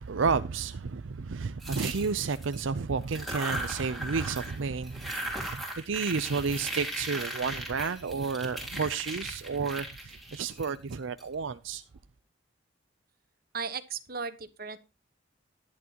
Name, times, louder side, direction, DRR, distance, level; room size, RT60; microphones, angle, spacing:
voice 1, 0.0-11.8, right 5 dB, 80° right, 0.6 m, -31 dB
sound 1, 1.6-2.6 3.0-4.6 4.8-11.2, right 1 dB, ahead, 3.5 m, -38 dB
voice 2, 13.5-14.8, right 5 dB, 50° right, 1.2 m, -36 dB
14.5 x 11.0 x 2.9 m
head